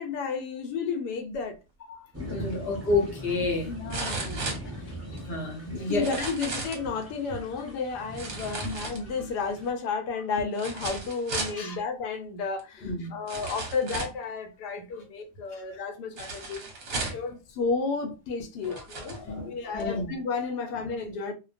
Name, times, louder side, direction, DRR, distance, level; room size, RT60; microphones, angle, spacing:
voice 1, 0.0-1.6 2.3-2.6 3.6-4.5 5.9-16.6 16.9-21.3, left 4 dB, 85° left, 1.2 m, -32 dB
voice 2, 1.9-3.7 5.2-6.1 11.5-11.8 12.8-13.2 16.9-17.1 18.6-20.1, left 3 dB, 50° left, 0.8 m, -30 dB
sound 1, 2.1-9.7, right 1 dB, 20° right, 0.4 m, -41 dB
sound 2, 2.5-2.6 3.9-5.2 5.9-6.9 8.1-9.3 10.5-11.6 12.6-12.7 13.3-14.2 16.2-17.3 18.1-18.2 18.6-19.2 19.8-19.9, right 3 dB, 55° right, 0.9 m, -35 dB
2.5 x 2.1 x 2.4 m
omnidirectional pair, 1.7 m